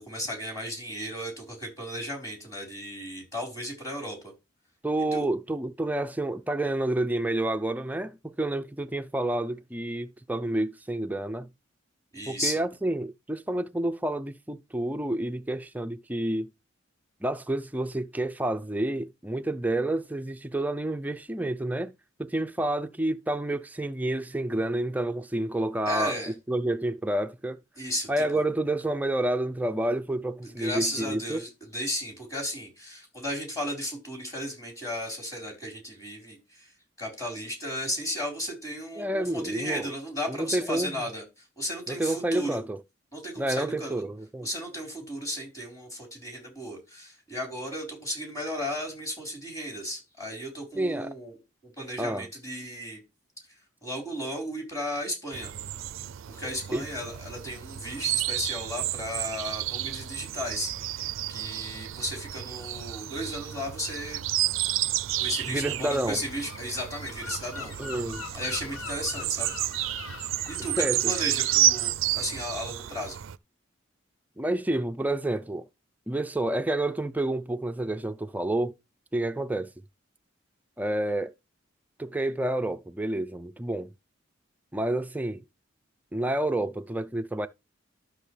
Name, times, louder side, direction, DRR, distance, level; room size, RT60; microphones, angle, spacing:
voice 1, 0.0-4.3 5.1-5.2 12.1-12.6 25.8-26.3 27.8-28.4 30.4-36.7 37.0-41.2 41.6-42.6 43.1-44.0 44.4-51.3 51.8-53.0 53.8-55.5 56.3-61.0 61.3-64.2 65.2-67.7 68.3-69.6 70.5-73.2, equal, 15° left, 4.5 m, -34 dB
voice 2, 4.8-11.5 12.3-16.5 17.2-21.9 22.2-27.6 28.1-31.4 39.0-39.9 40.3-41.0 41.9-42.8 43.4-44.5 50.8-51.1 52.0-52.3 56.7-56.8 65.5-66.2 67.8-68.2 70.8-71.1 74.4-75.7 76.1-78.7 79.1-79.7 80.8-81.3 82.0-83.9 84.7-85.4 86.1-87.5, right 1 dB, 10° right, 0.4 m, -29 dB
sound 1, 55.3-73.4, right 14 dB, 75° right, 0.4 m, -31 dB
Gull seagull, 66.1-71.9, left 4 dB, 80° left, 1.2 m, -43 dB
12.5 x 6.4 x 3.3 m
head